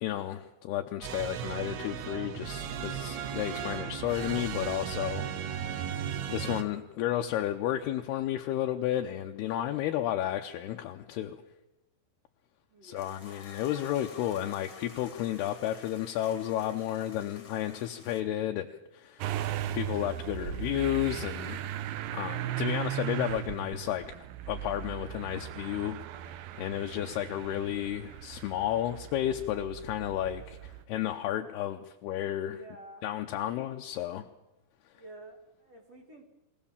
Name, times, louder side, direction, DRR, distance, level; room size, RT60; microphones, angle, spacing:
voice 1, 0.0-11.4 12.8-19.3 19.7-21.6 22.1-24.2 24.5-26.0 26.6-32.6 33.0-34.3, left 12 dB, 75° left, 4 dB, 2.4 m, -32 dB
sound 1, 1.0-6.6, right 9 dB, 70° right, 2.6 m, -36 dB
voice 2, 12.7-13.1 32.4-33.0 34.9-36.2, right 1 dB, 45° right, 3 dB, 2.6 m, -50 dB
sound 2, 13.0-18.2, left 5 dB, 35° left, 2.0 m, -50 dB
Motor vehicle (road) / Engine starting, 19.2-30.8, right 12 dB, 90° right, 2.0 m, -37 dB
23.0 x 17.0 x 7.3 m, 0.95 s
omnidirectional pair, 5.3 m